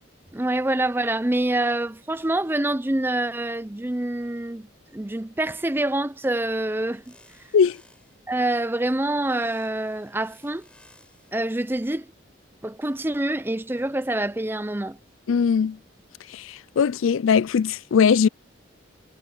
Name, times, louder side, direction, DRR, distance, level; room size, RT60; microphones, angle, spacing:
voice 1, 0.3-4.7 4.9-7.0 8.3-10.7 11.3-12.1 12.6-15.0, right 1 dB, 10° right, 0.5 m, -26 dB
sound 1, 6.1-8.3 9.2-11.5, left 1 dB, 5° left, 5.0 m, -58 dB
voice 2, 15.3-15.8 16.3-18.3, left 6 dB, 85° left, 0.4 m, -20 dB
head